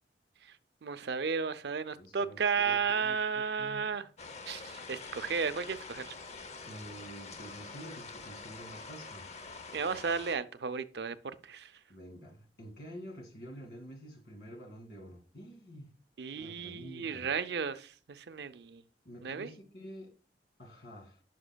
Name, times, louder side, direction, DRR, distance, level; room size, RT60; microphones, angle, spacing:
voice 1, 0.8-4.1 4.5-6.2 9.7-11.2 11.4-11.7 16.2-18.8 19.2-19.5, right 5 dB, 65° right, 0.5 m, -33 dB
voice 2, 1.9-4.0 6.7-9.3 11.9-16.0 16.3-17.3 19.0-20.1 20.6-21.2, equal, 65° left, 2.2 m, -48 dB
sound 1, 4.2-10.4, left 4 dB, 40° left, 0.7 m, -46 dB
10.0 x 5.9 x 2.3 m
head